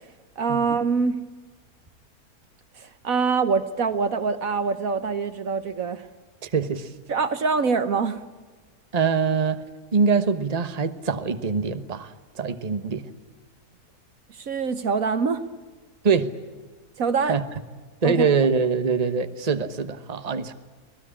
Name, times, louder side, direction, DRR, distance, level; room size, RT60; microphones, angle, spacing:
voice 1, 0.4-1.2 2.8-6.0 7.1-8.2 14.3-15.4 17.0-17.3 18.0-18.3, right 5 dB, 60° right, 11 dB, 1.5 m, -24 dB
voice 2, 6.4-6.9 8.9-9.6 9.9-13.0 16.0-16.3 17.3-17.4 18.0-20.5, right 5 dB, 25° right, 10 dB, 1.2 m, -23 dB
25.5 x 18.0 x 9.9 m, 1.4 s
omnidirectional pair, 1.7 m